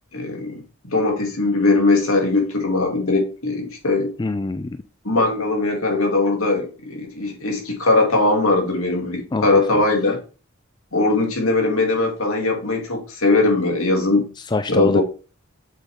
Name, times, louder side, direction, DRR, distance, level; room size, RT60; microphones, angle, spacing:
voice 1, 0.1-0.6 0.9-4.1 5.0-10.2 10.9-14.3 14.7-15.0, left 2 dB, 70° left, 2 dB, 2.6 m, -20 dB
voice 2, 4.2-4.8 9.3-9.6 14.5-15.0, left 3 dB, 20° left, 11 dB, 0.3 m, -24 dB
8.1 x 6.7 x 3.6 m, 0.35 s
head